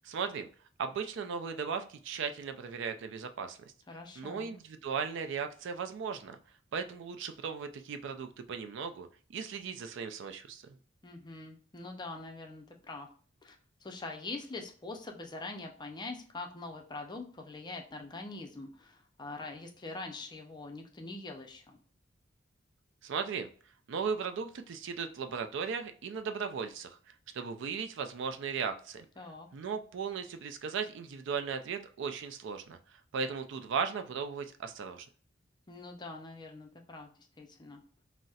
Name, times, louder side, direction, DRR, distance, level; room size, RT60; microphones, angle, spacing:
voice 1, 0.0-0.5 0.8-3.6 4.2-6.4 6.7-10.6 23.0-23.5 23.9-27.0 27.3-29.1 29.5-32.8 33.1-35.1, right 6 dB, 65° right, 8 dB, 0.4 m, -37 dB
voice 2, 3.9-4.5 11.0-13.1 13.4-21.8 29.2-29.5 35.7-37.1 37.4-37.8, left 3 dB, 25° left, 2 dB, 0.5 m, -44 dB
4.0 x 2.0 x 2.3 m, 0.43 s
head